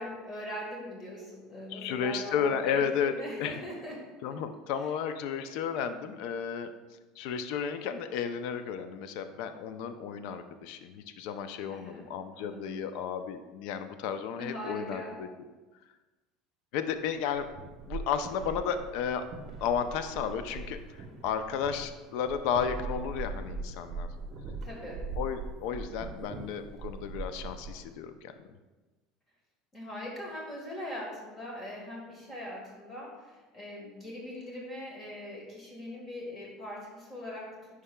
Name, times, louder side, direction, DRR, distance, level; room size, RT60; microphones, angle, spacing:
voice 1, 0.0-4.0 11.7-12.8 14.4-15.2 24.6-25.0 29.7-37.6, left 1 dB, 25° left, -2 dB, 1.5 m, -41 dB
voice 2, 1.7-3.6 4.2-6.7 7.2-15.3 16.7-17.5 17.9-19.2 19.6-24.1 25.2-28.3, left 7 dB, 70° left, 9 dB, 0.4 m, -33 dB
sound 1, 17.3-27.9, right 3 dB, 40° right, 0.7 m, -41 dB
9.9 x 4.7 x 2.2 m, 1.2 s
supercardioid pair, 125°, 0 cm